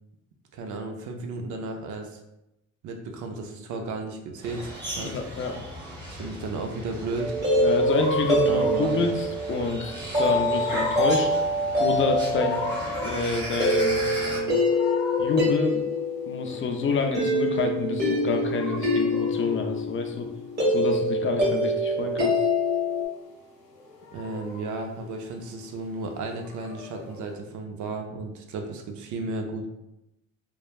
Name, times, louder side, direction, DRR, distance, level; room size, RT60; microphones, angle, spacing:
voice 1, 0.5-2.2 2.8-5.1 6.1-7.3 8.5-9.1 24.1-29.7, right 3 dB, 75° right, 3 dB, 0.5 m, -34 dB
sound 1, 4.4-14.4, right 1 dB, 15° right, 1.1 m, -37 dB
voice 2, 5.0-5.5 7.6-11.3 11.8-14.6 15.2-15.9 16.3-20.3 20.7-22.4, left 4 dB, 45° left, 4 dB, 0.4 m, -28 dB
sound 2, 7.2-23.0, equal, 35° right, 1.4 m, -25 dB
sound 3, 7.4-27.3, left 3 dB, 85° left, 0.9 m, -38 dB
3.1 x 2.1 x 2.3 m, 0.88 s
cardioid pair, 90°, 30 cm